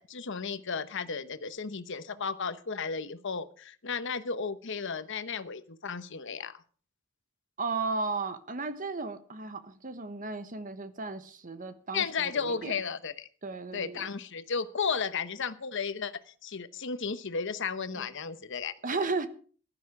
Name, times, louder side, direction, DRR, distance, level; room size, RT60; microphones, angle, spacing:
voice 1, 0.0-6.6 11.9-13.3 13.7-18.7, left 5 dB, 65° left, 1.0 m, -34 dB
voice 2, 7.6-12.7 13.4-14.1 17.9-18.1 18.8-19.3, right 3 dB, 40° right, 1.2 m, -35 dB
15.5 x 12.0 x 4.8 m
head